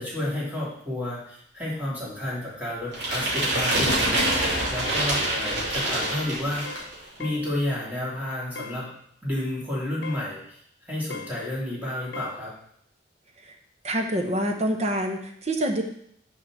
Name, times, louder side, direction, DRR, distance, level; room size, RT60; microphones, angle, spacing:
voice 1, 0.0-6.7 7.2-8.9 9.2-12.5, left 1 dB, 10° right, -7 dB, 3.1 m, -31 dB
sound 1, 2.9-6.9, right 1 dB, 70° right, 2.9 m, -25 dB
sound 2, 4.8-5.1 5.4-5.7 6.0-6.3 6.7-6.9 7.2-7.5 8.6-8.8 10.0-10.3 11.1-11.4 12.1-12.4, left 4 dB, 85° left, 0.6 m, -39 dB
voice 2, 13.8-15.8, right 1 dB, 40° right, 4 dB, 1.1 m, -26 dB
6.3 x 5.8 x 6.3 m, 0.67 s
head